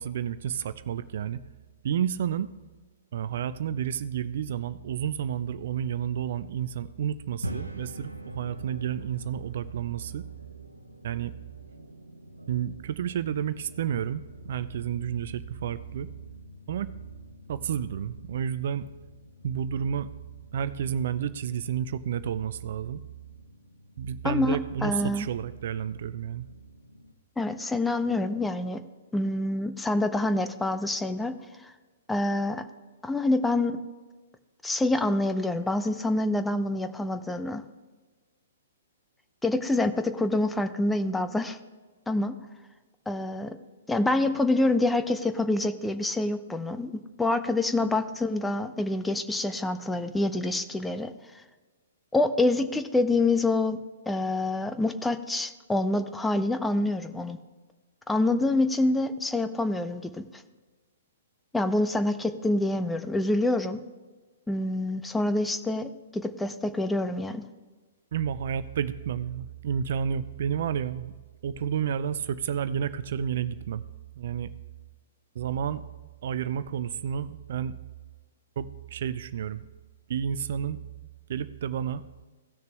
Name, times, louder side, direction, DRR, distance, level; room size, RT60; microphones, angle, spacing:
voice 1, 0.0-1.4 1.8-2.5 3.1-10.3 11.0-11.3 12.5-16.1 16.7-16.9 17.5-18.9 19.4-20.1 20.5-23.0 24.0-26.5 68.1-71.1 71.4-73.8 74.2-74.5 75.3-75.8 76.2-77.8 78.6-79.7 80.1-80.8 81.3-82.0, right 8 dB, 55° right, 15 dB, 0.4 m, -31 dB
sound 1, 7.2-27.1, right 1 dB, 90° right, 1.0 m, -46 dB
voice 2, 24.2-25.3 27.4-28.8 29.1-31.7 32.1-32.6 33.0-33.8 34.6-37.6 39.4-41.6 42.1-42.4 43.1-43.6 43.9-51.1 52.1-53.8 54.1-57.4 58.1-60.2 61.5-63.8 64.5-67.5, left 2 dB, 5° left, 9 dB, 0.6 m, -26 dB
16.5 x 6.5 x 3.3 m, 1.3 s
figure-of-eight pair, 115°, 0 cm